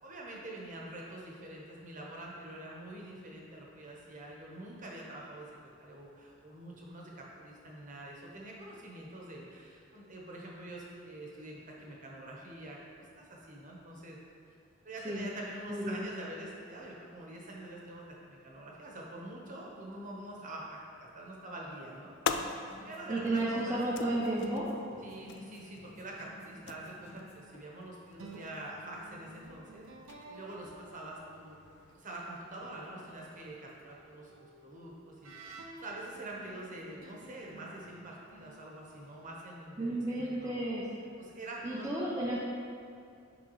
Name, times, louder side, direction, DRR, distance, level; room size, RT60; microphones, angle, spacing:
voice 1, 0.0-5.5 5.8-12.8 13.2-14.2 14.5-14.6 14.8-22.1 22.8-23.8 25.0-29.9 30.3-31.6 31.9-34.3 34.6-40.6 41.2-41.9, right 1 dB, 40° right, -3 dB, 1.0 m, -45 dB
voice 2, 15.7-16.1 23.1-24.7 39.8-40.9 41.6-42.4, right 1 dB, 15° right, -7 dB, 0.6 m, -32 dB
sound 1, 21.5-31.9, left 6 dB, 55° left, 0.3 m, -44 dB
sound 2, 22.3-27.5, left 1 dB, 30° left, 0.8 m, -55 dB
sound 3, 25.1-27.5 28.1-32.0 32.6-39.4, right 2 dB, 75° right, 0.6 m, -54 dB
10.5 x 3.6 x 3.1 m, 2.3 s
head